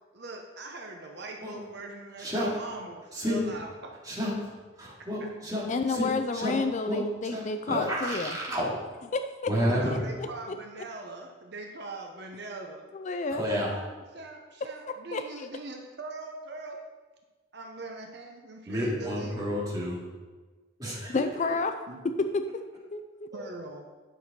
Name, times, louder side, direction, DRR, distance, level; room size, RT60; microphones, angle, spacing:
voice 1, 0.1-3.9 9.7-12.9 13.5-13.9 14.1-16.8 17.5-19.6 21.9-22.0 23.3-23.8, right 2 dB, 55° right, 2 dB, 0.9 m, -41 dB
voice 2, 2.2-2.6 3.1-3.5 4.0-4.5 5.1-6.6 6.9-8.7 9.5-10.0 13.4-13.7 18.7-20.0 20.8-21.2 23.3-23.5, equal, 20° right, -6 dB, 2.3 m, -30 dB
voice 3, 5.7-8.4 9.1-9.5 10.5-10.8 12.9-13.4 15.1-15.5 21.1-21.7 22.2-22.4 22.9-23.3, left 3 dB, 35° left, 8 dB, 0.4 m, -30 dB
10.0 x 6.5 x 4.3 m, 1.3 s
head